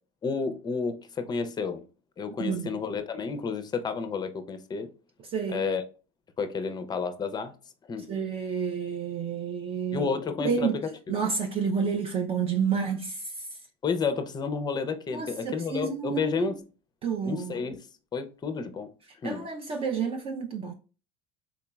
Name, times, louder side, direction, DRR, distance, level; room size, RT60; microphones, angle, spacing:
voice 1, 0.2-1.8 2.2-4.9 5.5-5.8 6.4-7.5 7.9-8.1 9.9-10.7 13.8-16.6 17.2-17.8 18.1-18.9 19.2-19.5, left 5 dB, 20° left, 0.5 m, -31 dB
voice 2, 2.4-2.7 5.3-5.7 8.1-10.1 10.4-10.8 11.1-13.5 15.1-16.5 17.0-17.6 19.2-20.7, right 6 dB, 30° right, 0.5 m, -30 dB
3.8 x 2.8 x 2.3 m
supercardioid pair, 105°, 18 cm